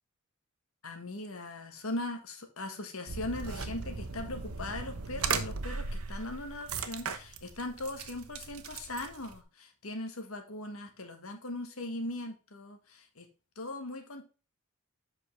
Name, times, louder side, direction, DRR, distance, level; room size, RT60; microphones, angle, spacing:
voice 1, 0.8-13.3 13.5-14.2, left 2 dB, 75° left, 6 dB, 1.6 m, -39 dB
sound 1, 3.1-9.4, right 5 dB, 85° right, 1.0 m, -37 dB
8.1 x 5.6 x 3.3 m, 0.33 s
head